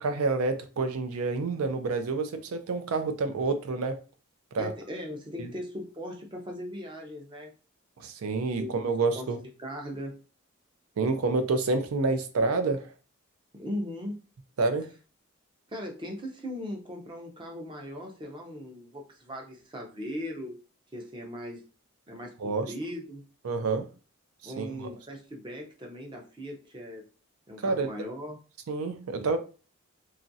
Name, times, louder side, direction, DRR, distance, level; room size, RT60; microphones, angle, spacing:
voice 1, 0.0-4.0 4.5-4.7 5.4-5.5 8.0-9.4 11.0-12.8 14.6-14.9 22.4-22.7 23.4-23.9 24.4-24.6 27.6-27.9 28.7-29.4, right 3 dB, 80° right, 0.4 m, -28 dB
voice 2, 4.6-7.5 8.6-8.7 9.1-10.2 13.5-14.2 15.7-20.6 20.9-21.6 22.1-23.2 24.4-27.0 27.5-28.4, equal, 20° right, 0.5 m, -39 dB
3.0 x 2.4 x 2.6 m
head